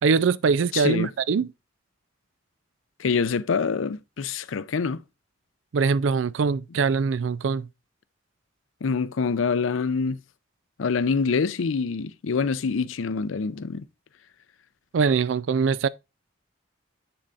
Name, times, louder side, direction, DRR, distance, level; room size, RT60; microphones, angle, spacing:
voice 1, 0.0-1.5 5.7-7.7 14.9-15.9, right 5 dB, 75° right, 0.4 m, -22 dB
voice 2, 0.7-1.1 3.0-5.0 8.8-10.2 10.8-13.9, left 5 dB, 85° left, 0.5 m, -25 dB
7.9 x 7.0 x 2.5 m
head